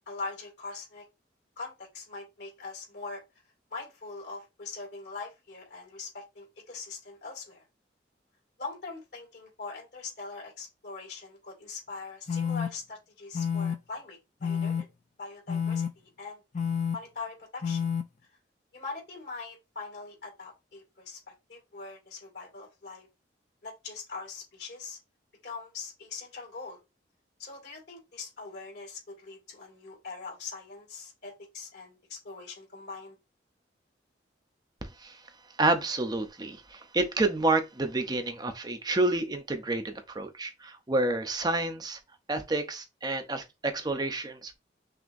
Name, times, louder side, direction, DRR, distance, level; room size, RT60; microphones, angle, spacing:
voice 1, 0.1-1.0 1.6-3.2 3.7-7.6 8.6-14.8 15.2-16.4 16.9-17.9 18.7-23.1 23.6-25.0 25.4-26.8 27.4-33.2, left 4 dB, 65° left, 2.4 m, -42 dB
sound 1, 12.3-12.7 13.3-13.7 14.4-14.8 15.5-15.9 16.5-17.0 17.6-18.0, left 7 dB, 40° left, 0.4 m, -29 dB
voice 2, 35.6-42.0 42.3-44.6, right 2 dB, 20° right, 0.6 m, -29 dB
5.9 x 2.8 x 2.6 m
head